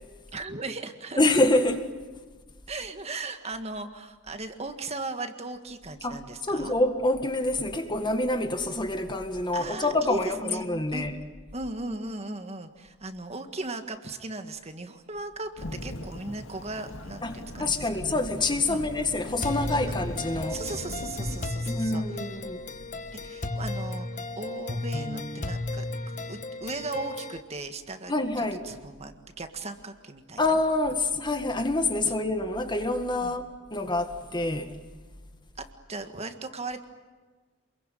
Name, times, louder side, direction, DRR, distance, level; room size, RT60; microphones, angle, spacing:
voice 1, 0.3-1.2 2.7-6.7 9.5-10.7 10.9-11.1 11.5-17.9 18.7-18.8 19.9-20.0 20.5-22.0 23.2-25.8 26.3-30.4 33.2-33.3 35.6-36.8, right 2 dB, 30° right, 1.7 m, -37 dB
voice 2, 1.2-1.9 6.0-11.1 17.2-20.6 21.7-22.6 28.1-28.7 30.4-34.7, left 2 dB, 20° left, 1.8 m, -27 dB
Thunderstorm / Rain, 15.6-21.5, left 1 dB, 70° left, 2.2 m, -39 dB
sound 1, 19.4-27.4, left 2 dB, 40° left, 1.4 m, -34 dB
28.0 x 22.0 x 9.2 m
head